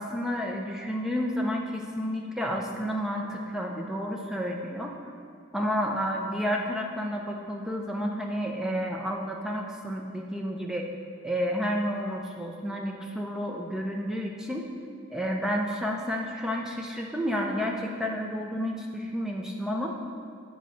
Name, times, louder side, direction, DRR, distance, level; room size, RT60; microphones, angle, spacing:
voice 1, 0.0-5.0 5.5-10.9 11.2-14.7 15.1-19.9, equal, ahead, 0 dB, 0.5 m, -30 dB
7.2 x 3.9 x 6.4 m, 2.4 s
head